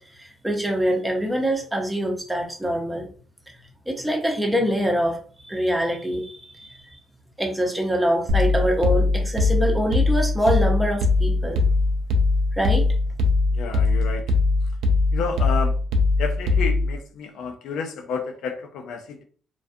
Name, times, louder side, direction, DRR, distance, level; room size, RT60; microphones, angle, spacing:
voice 1, 0.1-3.1 3.9-7.0 7.4-11.6 12.5-12.8, equal, 10° right, 1 dB, 0.7 m, -24 dB
sound 1, 8.3-17.0, left 3 dB, 80° right, 0.4 m, -21 dB
voice 2, 13.5-14.4 15.1-15.8 16.2-19.2, left 5 dB, 80° left, 5 dB, 0.4 m, -30 dB
2.4 x 2.2 x 2.5 m, 0.43 s
cardioid pair, 90°, 0 cm